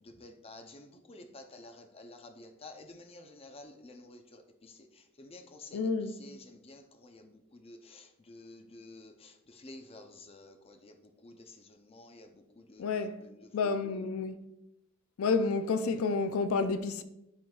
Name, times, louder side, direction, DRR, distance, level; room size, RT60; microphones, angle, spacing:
voice 1, 0.0-4.7 5.2-5.9 6.2-10.9 11.2-12.3 12.6-13.3, left 2 dB, 30° left, 0.6 m, -51 dB
voice 2, 5.7-6.2 12.8-13.2 13.5-14.4 15.2-17.0, left 4 dB, 90° left, 0.4 m, -30 dB
10.5 x 3.8 x 2.4 m
head